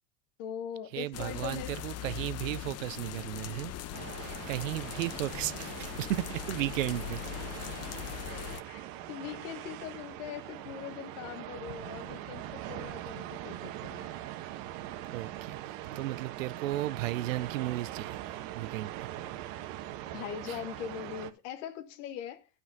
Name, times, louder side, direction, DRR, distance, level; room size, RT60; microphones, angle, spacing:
voice 1, 0.4-1.8 8.2-14.1 20.1-22.5, left 9 dB, 70° left, 1.5 m, -41 dB
voice 2, 0.9-3.7 4.2-7.2 7.5-7.8 15.1-18.2 18.5-19.1 20.5-20.6, right 16 dB, 80° right, 0.7 m, -35 dB
sound 1, 1.1-8.6, left 12 dB, 40° left, 0.8 m, -40 dB
sound 2, 3.9-21.3, right 13 dB, 60° right, 1.3 m, -42 dB
9.6 x 5.6 x 5.6 m
hypercardioid pair, 85°, 39 cm